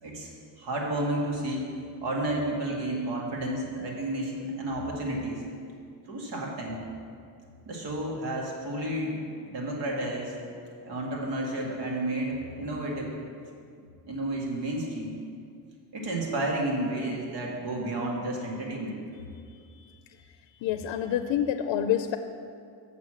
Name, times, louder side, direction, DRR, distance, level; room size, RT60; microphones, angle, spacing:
voice 1, 0.6-5.4 6.1-6.8 7.7-9.2 9.4-10.4 10.8-13.1 14.0-15.1 15.9-19.0, right 1 dB, 75° right, -2 dB, 1.9 m, -31 dB
voice 2, 19.7-20.2 20.6-22.2, left 10 dB, 85° left, 9 dB, 0.5 m, -28 dB
6.8 x 6.4 x 7.5 m, 2.4 s
cardioid pair, 165°, 43 cm